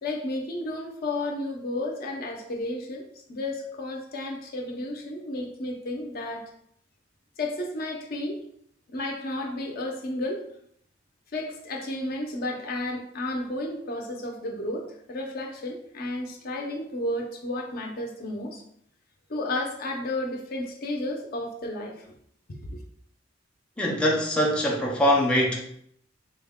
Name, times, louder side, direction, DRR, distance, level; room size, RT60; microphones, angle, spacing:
voice 1, 0.0-6.4 7.4-8.4 8.9-10.4 11.3-18.6 19.3-22.1 22.5-22.8, left 1 dB, 50° left, 2 dB, 0.6 m, -32 dB
voice 2, 23.8-25.6, equal, 5° left, -3 dB, 0.5 m, -23 dB
3.9 x 2.1 x 3.5 m, 0.68 s
head